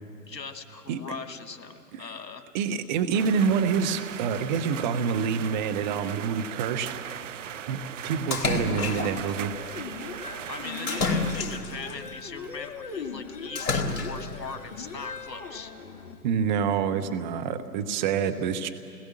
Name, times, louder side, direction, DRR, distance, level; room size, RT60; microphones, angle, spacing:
voice 1, 0.3-2.4 10.5-15.7, left 5 dB, 85° left, 7 dB, 1.9 m, -40 dB
voice 2, 2.5-7.1 7.7-9.5 16.2-18.7, right 6 dB, 30° right, 9 dB, 1.0 m, -27 dB
sound 1, 3.1-11.4, right 10 dB, 50° right, 0.7 m, -39 dB
Splash splatter, 8.3-9.3 10.9-11.9 13.6-14.4, left 3 dB, 60° left, 3.1 m, -28 dB
sound 2, 9.4-16.2, left 5 dB, 30° left, 1.8 m, -39 dB
29.0 x 20.0 x 7.6 m, 2.5 s
hypercardioid pair, 135°, 49 cm